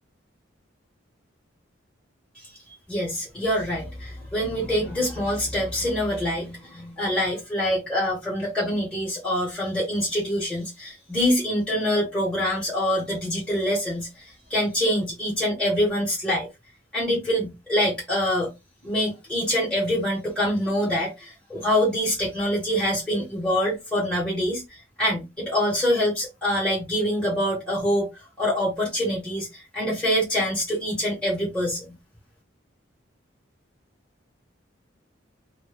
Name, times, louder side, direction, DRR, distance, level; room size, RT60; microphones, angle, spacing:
voice 1, 2.9-16.5 16.9-18.5 18.8-28.1 28.4-31.9, equal, 5° left, 0.9 m, -25 dB
2.1 x 2.1 x 3.3 m
head